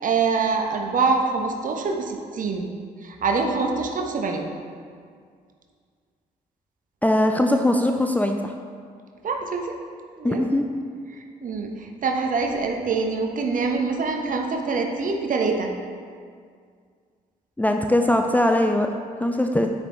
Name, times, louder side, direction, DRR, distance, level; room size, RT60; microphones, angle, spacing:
voice 1, 0.0-2.7 3.0-4.5 9.2-9.7 10.2-10.4 11.4-15.7, right 4 dB, 45° right, 3 dB, 1.3 m, -25 dB
voice 2, 7.0-8.5 10.2-10.7 17.6-19.7, left 1 dB, 10° left, 4 dB, 0.6 m, -21 dB
9.6 x 9.4 x 3.3 m, 2.1 s
figure-of-eight pair, 40°, 20 cm